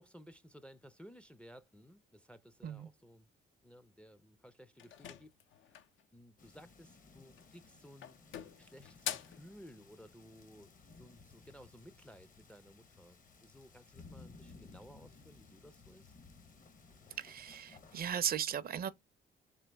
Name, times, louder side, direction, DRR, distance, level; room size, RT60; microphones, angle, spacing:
voice 1, 0.0-3.3 3.6-5.3 5.7-5.8 6.1-8.2 8.6-16.1, equal, 5° left, 0.4 m, -57 dB
sound 1, 4.8-6.0 7.3-7.7 8.0-9.5, left 10 dB, 75° left, 0.6 m, -44 dB
sound 2, 6.4-18.0, left 4 dB, 40° left, 0.8 m, -59 dB
voice 2, 17.2-18.9, right 9 dB, 50° right, 0.5 m, -37 dB
3.9 x 3.0 x 3.3 m
cardioid pair, 90°, 20 cm